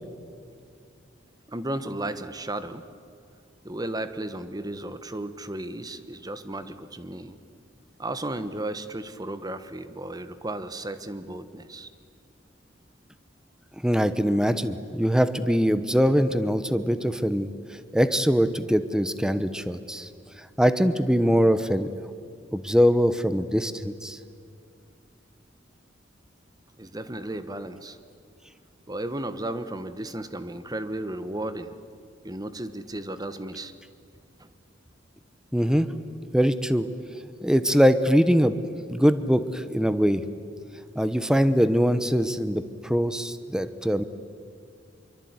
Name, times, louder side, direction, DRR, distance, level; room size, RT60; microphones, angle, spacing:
voice 1, 1.5-2.8 3.6-7.4 8.0-11.9 26.8-28.0 28.9-31.8 32.2-33.7 34.4-34.5, right 1 dB, 20° right, 11 dB, 1.3 m, -34 dB
voice 2, 13.8-17.5 17.9-20.1 20.6-21.9 22.5-24.2 35.5-35.9 36.3-36.9 37.4-40.2 41.0-44.0, equal, 5° right, 12 dB, 1.0 m, -22 dB
26.0 x 23.5 x 9.6 m, 2.3 s
head